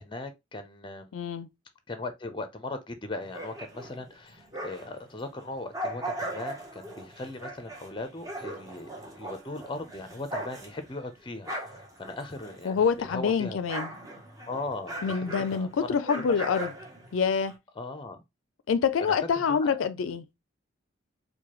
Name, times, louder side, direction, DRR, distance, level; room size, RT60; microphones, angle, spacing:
voice 1, 0.0-1.1 1.9-13.6 14.5-15.2 15.5-16.3 17.8-18.2 19.6-19.9, left 2 dB, 25° left, 0.6 m, -39 dB
voice 2, 1.1-1.5 12.6-13.9 15.0-16.7 17.1-17.6 18.7-20.2, left 6 dB, 80° left, 0.4 m, -26 dB
sound 1, 3.2-5.0 5.4-13.0 13.3-17.5, right 1 dB, 15° right, 0.8 m, -39 dB
4.7 x 2.2 x 3.0 m
head